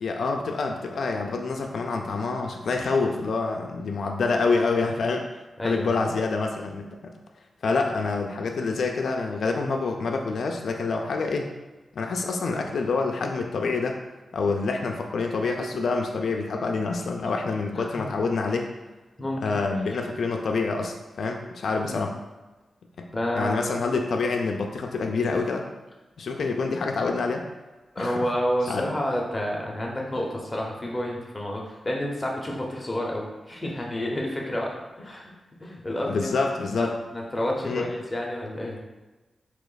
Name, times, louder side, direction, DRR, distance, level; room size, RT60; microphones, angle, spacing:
voice 1, 0.0-5.2 5.6-7.1 7.6-11.5 11.9-14.0 14.3-18.7 19.4-22.1 23.0-23.1 23.4-25.7 26.2-27.4 28.0-28.2 28.7-28.8 36.1-36.9 37.6-37.9, left 4 dB, 65° left, 2 dB, 0.4 m, -27 dB
voice 2, 5.6-5.9 17.8-18.0 19.2-19.6 21.9-22.0 23.1-23.6 27.9-35.3 35.6-36.3 36.7-38.8, left 1 dB, 15° left, -2 dB, 0.7 m, -29 dB
3.1 x 2.8 x 3.9 m, 1.1 s
wide cardioid pair, 135°, 0 cm